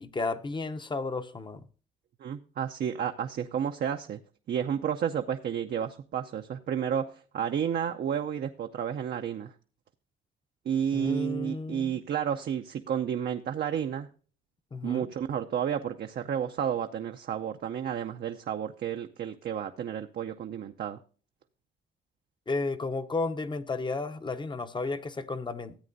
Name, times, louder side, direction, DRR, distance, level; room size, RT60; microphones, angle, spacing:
voice 1, 0.0-1.7 10.9-12.0 14.7-15.1 22.5-25.8, left 3 dB, 25° left, 0.7 m, -33 dB
voice 2, 2.2-4.2 4.5-9.5 10.7-14.1 14.8-21.0, right 8 dB, 55° right, 0.6 m, -31 dB
14.5 x 8.3 x 2.6 m
cardioid pair, 90°, 20 cm